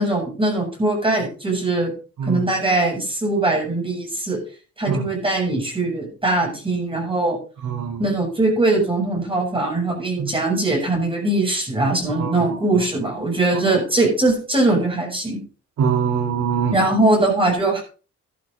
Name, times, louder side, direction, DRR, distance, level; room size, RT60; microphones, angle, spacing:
voice 1, 0.0-1.9 2.3-4.4 4.8-7.4 8.0-15.4 16.7-17.8, right 2 dB, 15° right, 0 dB, 7.3 m, -21 dB
voice 2, 7.6-8.0 10.2-10.3 12.1-12.8 15.8-16.8, right 6 dB, 75° right, 3 dB, 3.9 m, -23 dB
14.0 x 12.5 x 2.7 m, 0.35 s
cardioid pair, 90°, 30 cm